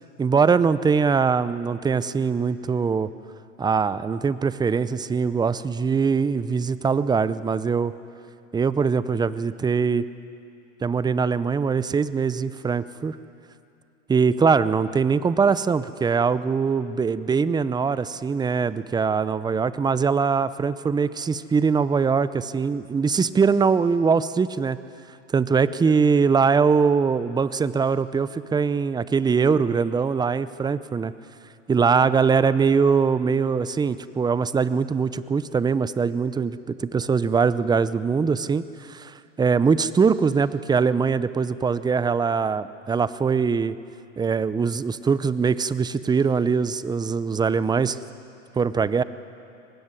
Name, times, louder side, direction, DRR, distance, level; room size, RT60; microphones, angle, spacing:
voice 1, 0.2-3.1 3.6-7.9 8.5-10.0 10.8-13.2 14.1-24.8 25.3-31.1 31.7-43.8 44.2-48.0 48.5-49.0, right 5 dB, 10° right, 15 dB, 0.7 m, -22 dB
24.0 x 19.5 x 9.8 m, 2.6 s
hypercardioid pair, 105°, 38 cm